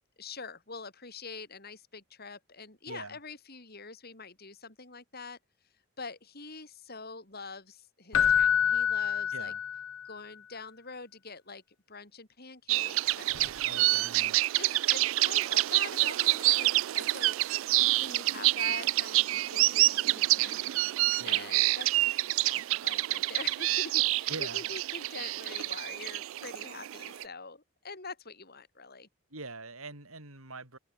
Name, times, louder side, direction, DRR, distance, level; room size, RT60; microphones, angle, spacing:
voice 1, 0.2-5.4 6.0-9.5 10.0-11.6 11.9-14.1 14.5-17.4 18.0-20.6 21.2-29.1, left 4 dB, 45° left, 4.9 m, -45 dB
voice 2, 2.9-3.2 9.3-9.6 13.6-14.4 21.2-21.5 24.3-24.6 29.3-30.8, right 3 dB, 80° right, 7.4 m, -43 dB
Keyboard (musical), 8.1-10.1 13.3-13.5, left 8 dB, 70° left, 0.7 m, -27 dB
sound 1, 12.7-27.2, right 18 dB, 65° right, 0.3 m, -27 dB
head